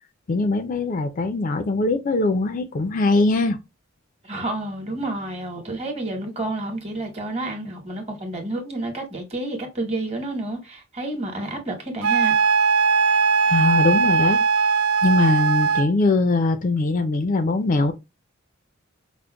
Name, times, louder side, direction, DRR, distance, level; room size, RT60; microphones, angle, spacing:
voice 1, 0.3-3.6 13.5-14.4 15.0-17.9, left 3 dB, 40° left, 0.4 m, -21 dB
voice 2, 4.2-12.4, right 2 dB, 30° right, 1.1 m, -30 dB
Wind instrument woodwind instrument, 12.0-15.9, right 5 dB, 75° right, 0.4 m, -19 dB
5.0 x 2.1 x 2.2 m
head